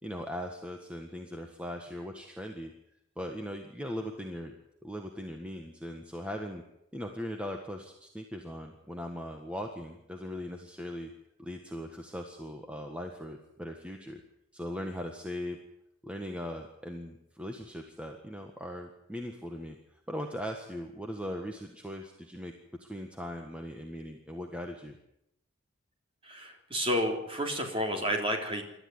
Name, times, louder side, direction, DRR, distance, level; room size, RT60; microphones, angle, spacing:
voice 1, 0.0-2.7 3.2-4.5 4.8-6.6 6.9-11.1 11.4-14.2 14.5-15.6 16.0-22.5 22.8-24.9, equal, 5° right, 3 dB, 1.5 m, -39 dB
voice 2, 26.2-28.6, equal, 25° right, 2 dB, 3.8 m, -30 dB
27.5 x 13.0 x 9.7 m, 0.82 s
head